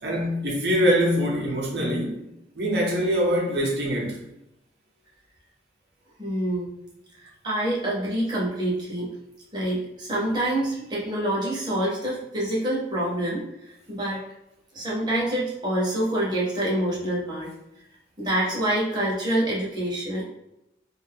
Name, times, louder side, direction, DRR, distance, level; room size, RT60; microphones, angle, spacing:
voice 1, 0.0-2.2 2.5-4.2, equal, 70° right, -2 dB, 0.7 m, -23 dB
voice 2, 6.2-6.7 7.2-9.1 9.5-13.5 13.9-14.2 14.7-17.5 18.2-20.2, right 1 dB, 25° right, -6 dB, 0.7 m, -26 dB
2.5 x 2.3 x 3.4 m, 0.88 s
head